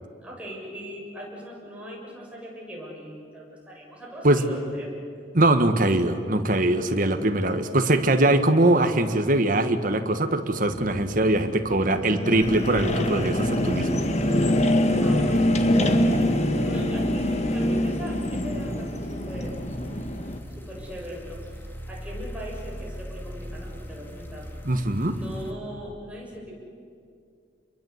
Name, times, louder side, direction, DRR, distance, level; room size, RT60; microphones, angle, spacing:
voice 1, 0.2-5.2 15.0-16.0 16.6-19.6 20.5-21.6 21.9-24.5 25.0-26.6, equal, 10° right, -4 dB, 7.1 m, -40 dB
voice 2, 5.3-14.0 24.7-25.1, right 1 dB, 50° right, 7 dB, 1.7 m, -22 dB
sound 1, 10.6-20.4, left 1 dB, 40° left, 1.8 m, -25 dB
sound 2, 12.4-25.5, equal, 15° left, 2.4 m, -38 dB
29.5 x 23.0 x 8.2 m, 2.4 s
head